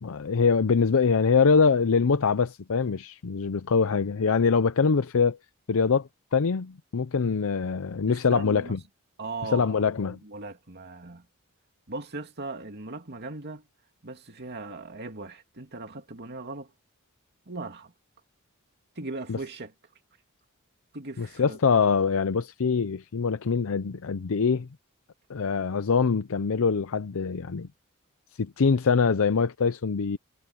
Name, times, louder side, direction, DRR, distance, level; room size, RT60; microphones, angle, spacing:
voice 1, 0.0-5.4 5.7-8.8 9.5-10.2 19.3-19.4 21.2-24.7 25.3-27.7 28.4-30.2, left 5 dB, 70° left, 0.6 m, -24 dB
voice 2, 8.1-8.8 9.2-9.8 10.1-11.2 11.9-13.6 14.0-16.7 17.5-17.9 19.0-19.7 20.9-21.6, right 3 dB, 50° right, 2.6 m, -38 dB
head